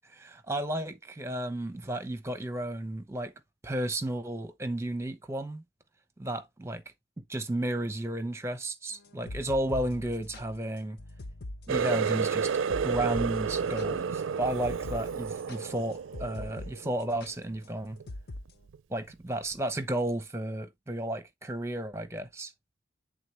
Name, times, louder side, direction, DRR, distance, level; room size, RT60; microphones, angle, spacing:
voice 1, 0.1-3.3 3.6-5.6 6.2-6.8 7.2-11.0 11.7-12.5 12.8-18.0 18.9-22.5, right 1 dB, 15° right, 0.9 m, -33 dB
sound 1, 9.0-16.7 17.0-17.3 18.1-18.4, left 1 dB, 55° left, 0.6 m, -42 dB
Water tap faucet, 11.7-17.2 17.6-18.0 18.5-18.8 19.5-19.6, right 6 dB, 85° right, 0.4 m, -31 dB
9.6 x 3.8 x 3.3 m
head